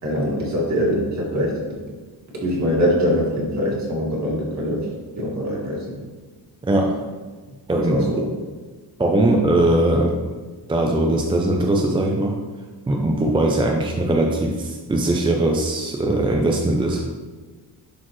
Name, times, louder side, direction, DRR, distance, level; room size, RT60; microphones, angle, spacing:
voice 1, 0.0-1.6 2.4-4.8 5.2-6.0 7.9-8.2, equal, 40° right, -4 dB, 2.1 m, -23 dB
voice 2, 6.6-7.1 7.7-8.2 9.0-10.3 10.7-12.4 12.9-17.0, right 1 dB, 15° right, 0 dB, 0.3 m, -20 dB
11.0 x 4.3 x 3.1 m, 1.4 s
cardioid pair, 175°, 44 cm